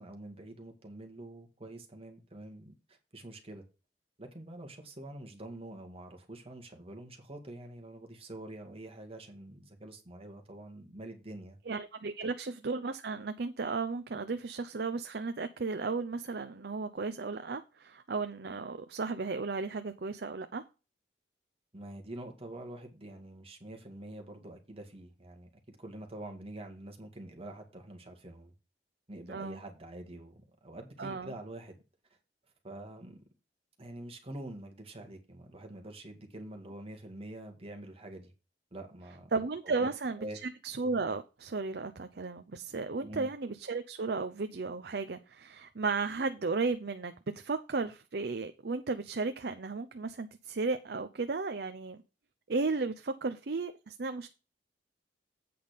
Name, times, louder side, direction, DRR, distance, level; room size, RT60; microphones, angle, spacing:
voice 1, 0.0-3.6 4.2-11.6 12.2-12.3 21.7-28.5 29.1-31.8 32.6-33.2 33.8-38.3 38.7-39.3 39.6-39.9 40.2-40.4 43.0-43.3, right 1 dB, 35° right, 2.2 m, -46 dB
voice 2, 11.7-20.6 29.3-29.6 31.0-31.3 39.3-52.0 52.5-54.3, right 4 dB, 65° right, 0.7 m, -34 dB
8.6 x 5.7 x 5.2 m
head